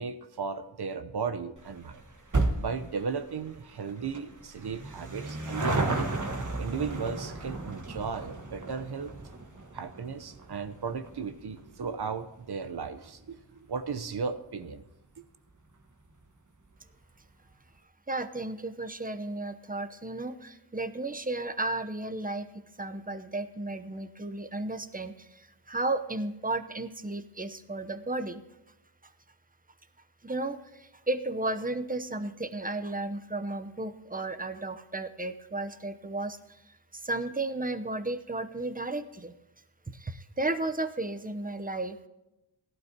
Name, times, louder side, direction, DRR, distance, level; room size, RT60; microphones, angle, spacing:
voice 1, 0.0-2.0 2.5-6.1 6.6-9.1 9.7-14.8, right 5 dB, 55° right, 10 dB, 0.9 m, -35 dB
sound 1, 1.6-14.3 14.6-14.7 15.6-15.7 15.9-16.0 16.3-16.4, right 2 dB, 40° right, 1.6 m, -35 dB
voice 2, 18.1-22.5 22.8-28.4 30.2-36.4 36.9-39.3 39.9-42.1, right 2 dB, 20° right, 10 dB, 0.8 m, -34 dB
17.0 x 12.0 x 2.9 m, 0.97 s
cardioid pair, 45°, 48 cm